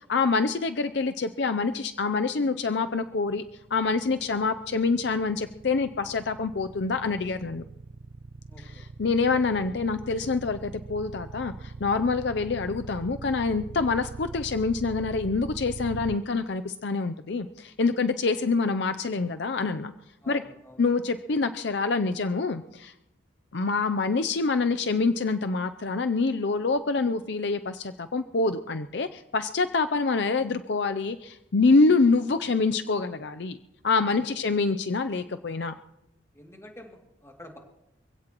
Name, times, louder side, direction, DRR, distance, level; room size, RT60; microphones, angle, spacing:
voice 1, 0.1-3.4 3.7-7.7 8.8-19.9 20.3-20.4 20.8-22.9 23.5-33.6 33.8-35.7, left 4 dB, 65° left, 9 dB, 0.6 m, -26 dB
sound 1, 2.9-16.2, right 4 dB, 80° right, 0.6 m, -41 dB
voice 2, 8.5-8.9 20.2-20.8 34.4-34.7 36.3-37.6, left 1 dB, 15° left, 1 dB, 2.5 m, -49 dB
26.0 x 16.5 x 3.0 m, 0.87 s
head